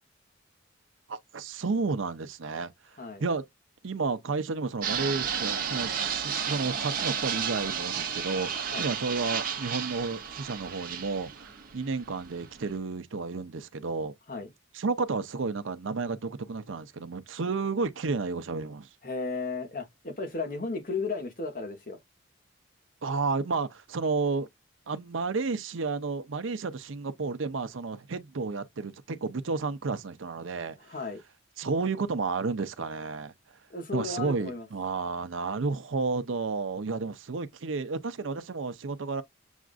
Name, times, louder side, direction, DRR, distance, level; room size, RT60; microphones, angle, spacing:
voice 1, 1.1-2.7 3.2-3.4 3.8-14.1 14.7-18.9 23.0-24.5 24.9-30.8 31.6-33.3 33.9-39.2, right 4 dB, 80° right, 0.6 m, -31 dB
Fixed-wing aircraft airplane, 4.8-12.7, right 7 dB, 45° right, 0.8 m, -32 dB
voice 2, 19.0-22.0 30.8-31.2 33.7-34.7, left 3 dB, 45° left, 1.1 m, -34 dB
7.1 x 2.5 x 2.4 m
head